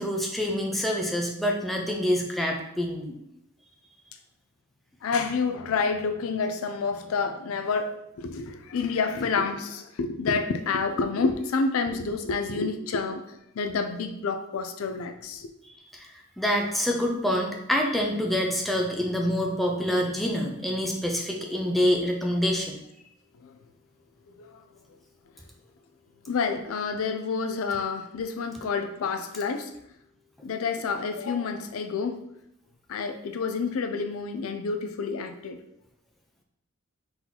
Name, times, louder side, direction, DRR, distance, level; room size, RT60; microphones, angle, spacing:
voice 1, 0.0-3.2 16.0-16.1 16.4-22.8, equal, ahead, 0 dB, 0.5 m, -26 dB
voice 2, 5.0-13.2 13.5-15.5 23.4-23.6 24.4-24.6 26.3-29.7 30.4-32.2 32.9-35.6, left 4 dB, 70° left, 7 dB, 0.4 m, -29 dB
4.0 x 2.9 x 3.9 m, 0.78 s
head